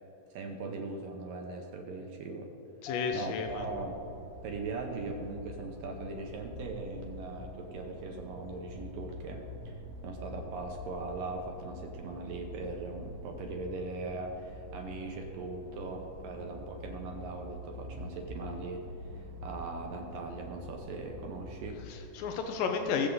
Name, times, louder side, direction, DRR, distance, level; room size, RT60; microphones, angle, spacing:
voice 1, 0.3-2.5 3.1-4.0 4.4-18.8 19.1-21.8 22.8-23.0, right 3 dB, 70° right, 3 dB, 2.2 m, -40 dB
voice 2, 2.8-3.7 21.9-23.1, left 6 dB, 85° left, 4 dB, 1.9 m, -32 dB
Mallet percussion, 2.9-5.4, left 10 dB, 65° left, 2.3 m, -45 dB
sound 1, 3.5-21.9, equal, 85° right, 3.5 m, -46 dB
21.5 x 7.6 x 3.9 m, 2.8 s
omnidirectional pair, 5.0 m